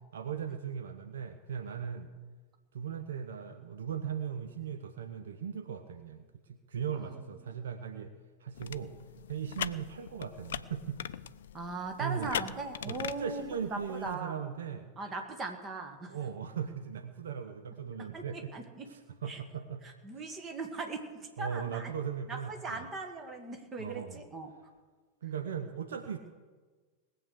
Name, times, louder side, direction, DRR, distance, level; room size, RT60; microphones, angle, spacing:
voice 1, 0.1-2.1 2.7-8.1 8.4-8.9 9.3-11.0 12.0-12.3 12.8-14.9 16.1-18.5 18.9-19.8 21.4-22.9 23.8-24.2 25.2-26.2, right 7 dB, 65° right, 7 dB, 0.8 m, -38 dB
sound 1, 8.5-14.1, left 9 dB, 60° left, 0.4 m, -41 dB
voice 2, 11.5-13.4 13.7-14.6 15.0-16.2 18.0-18.9 19.3-19.4 19.8-21.9 22.3-24.5, right 3 dB, 25° right, 4 dB, 2.0 m, -39 dB
19.5 x 7.9 x 6.6 m, 1.4 s
figure-of-eight pair, 90°, 0 cm